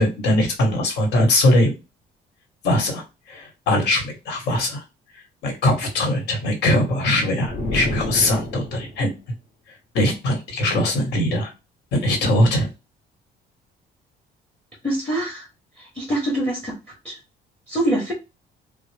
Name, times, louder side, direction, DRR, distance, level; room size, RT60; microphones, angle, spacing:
voice 1, 0.0-1.7 2.6-4.8 5.1-9.1 9.9-11.5 11.9-12.7, left 1 dB, 70° left, 3 dB, 1.3 m, -21 dB
sound 1, 7.4-9.1, left 1 dB, 55° left, 1.0 m, -28 dB
voice 2, 14.8-15.5 16.0-16.7 17.0-17.2 17.7-18.1, right 1 dB, 5° left, 0 dB, 0.8 m, -24 dB
3.8 x 2.0 x 3.3 m, 0.27 s
cardioid pair, 175°, 18 cm